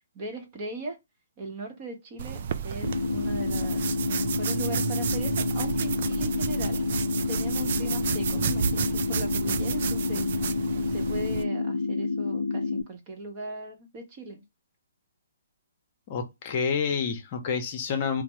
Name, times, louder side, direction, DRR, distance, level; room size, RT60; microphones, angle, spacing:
voice 1, 0.1-1.0 1.4-3.8 4.1-6.8 7.3-10.3 10.8-14.4, right 2 dB, 30° right, 0.9 m, -39 dB
sound 1, 2.2-11.4, right 8 dB, 50° right, 0.3 m, -31 dB
sound 2, 2.8-12.8, left 4 dB, 80° left, 0.3 m, -29 dB
voice 2, 16.1-18.2, left 6 dB, 35° left, 0.7 m, -28 dB
3.3 x 2.0 x 3.0 m
hypercardioid pair, 150°, 0 cm